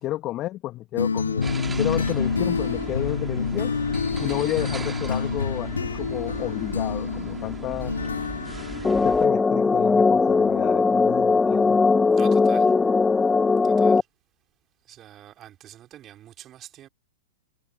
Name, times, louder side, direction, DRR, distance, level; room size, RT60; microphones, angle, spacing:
voice 1, 0.0-3.7 4.2-7.9 9.0-11.8, left 15 dB, 30° left, 2.3 m, -31 dB
sound 1, 1.0-9.4, left 5 dB, 80° left, 2.7 m, -28 dB
sound 2, 1.4-9.3, right 4 dB, 10° right, 3.9 m, -37 dB
sound 3, 8.8-14.0, left 4 dB, 10° left, 1.3 m, -19 dB
voice 2, 12.2-12.7 13.6-14.1 14.9-16.9, right 12 dB, 25° right, 3.8 m, -45 dB
figure-of-eight pair, 105°, 0 cm